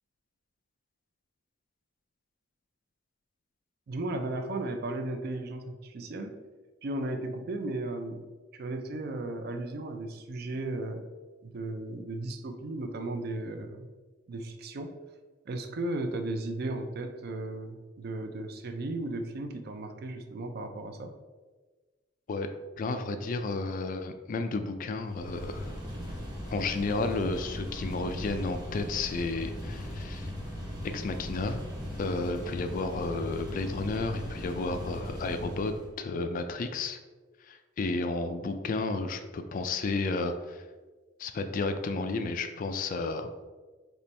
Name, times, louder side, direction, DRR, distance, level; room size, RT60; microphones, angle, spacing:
voice 1, 3.9-6.4 6.8-8.2 8.5-11.0 11.4-13.9 14.3-15.0 15.5-21.1, right 2 dB, 55° right, 6 dB, 0.4 m, -35 dB
voice 2, 22.8-25.7 26.5-30.3 30.8-31.6 32.0-37.0 37.5-40.6 41.2-43.3, left 3 dB, 45° left, 8 dB, 0.3 m, -32 dB
sound 1, 25.0-35.9, equal, 20° right, 1.4 m, -38 dB
4.3 x 3.0 x 3.2 m, 1.3 s
head